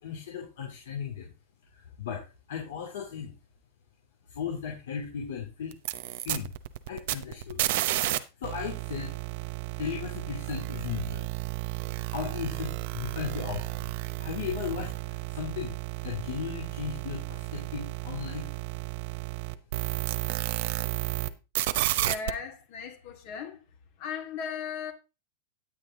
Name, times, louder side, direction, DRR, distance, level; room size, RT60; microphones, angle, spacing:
voice 1, 0.0-1.3 1.7-2.2 2.5-3.3 4.3-5.7 6.0-6.5 6.9-7.6 8.4-9.1 9.8-11.3 12.1-13.8 14.2-15.8 16.0-18.6, left 7 dB, 75° left, 2.5 m, -36 dB
sound 1, 5.7-8.2 8.4-21.3 21.5-22.3, right 17 dB, 60° right, 0.8 m, -32 dB
voice 2, 21.9-23.6 24.0-24.9, left 6 dB, 50° left, 2.2 m, -37 dB
9.7 x 8.0 x 3.7 m
supercardioid pair, 135°, 0 cm